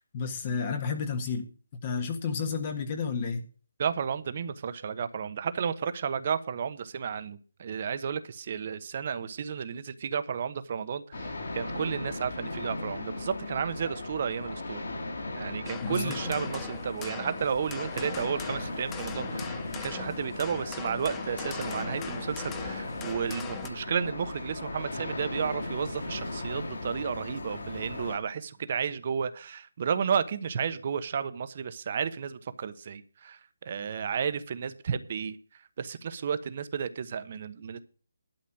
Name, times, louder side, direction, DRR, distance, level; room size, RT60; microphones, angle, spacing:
voice 1, 0.0-1.5 1.8-3.4 15.8-16.2, left 5 dB, 35° left, 1.5 m, -31 dB
voice 2, 3.8-14.9 15.3-33.4 33.6-35.4 35.8-37.8, right 7 dB, 40° right, 1.1 m, -32 dB
sound 1, 11.1-28.2, left 2 dB, 65° left, 5.5 m, -37 dB
sound 2, 15.7-23.7, left 9 dB, 15° left, 0.8 m, -42 dB
12.0 x 5.6 x 7.7 m
figure-of-eight pair, 150°, 0 cm